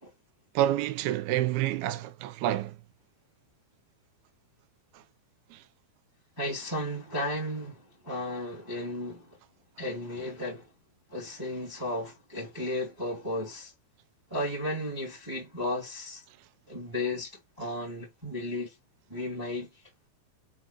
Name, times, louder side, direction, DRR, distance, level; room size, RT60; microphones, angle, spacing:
voice 1, 0.6-2.8 5.5-5.6, right 13 dB, 80° right, 2.3 m, -28 dB
voice 2, 6.4-9.4 9.8-10.7 11.1-13.7 14.3-16.2 16.7-18.7 19.1-19.7, left 1 dB, 10° right, 1.2 m, -34 dB
7.6 x 4.8 x 3.1 m
omnidirectional pair, 5.3 m